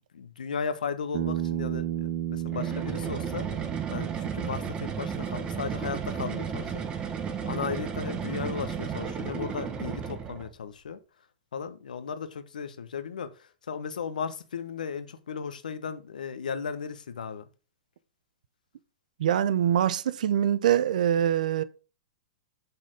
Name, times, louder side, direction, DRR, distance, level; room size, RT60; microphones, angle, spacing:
voice 1, 0.1-7.1 7.4-11.0 11.5-17.4, left 6 dB, 90° left, 1.1 m, -36 dB
Bass guitar, 1.1-5.5, right 12 dB, 55° right, 1.2 m, -33 dB
sound 1, 2.5-10.5, right 7 dB, 25° right, 1.2 m, -33 dB
voice 2, 19.2-21.6, right 10 dB, 75° right, 0.7 m, -24 dB
8.0 x 4.5 x 5.0 m
hypercardioid pair, 130°, 4 cm